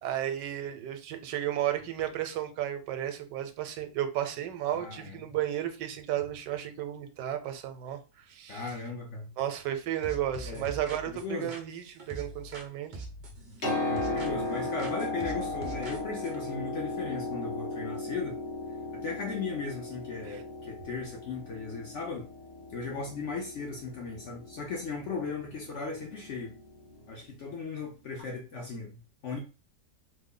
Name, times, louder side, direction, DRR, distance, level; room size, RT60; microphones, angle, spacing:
voice 1, 0.0-8.0 8.3-8.6 9.4-12.9 20.3-20.4, right 11 dB, 85° right, 1.2 m, -33 dB
voice 2, 4.7-5.4 8.5-9.3 10.4-10.7 11.1-11.5 13.8-18.4 18.9-22.3 22.7-26.5 27.1-29.4, left 4 dB, 65° left, 0.8 m, -37 dB
sound 1, 10.0-12.7 12.9-14.5 14.8-16.4, right 2 dB, 65° right, 0.4 m, -43 dB
Piano, 13.4-27.1 28.2-28.3, left 2 dB, 35° left, 1.1 m, -37 dB
3.2 x 2.1 x 3.6 m
omnidirectional pair, 1.8 m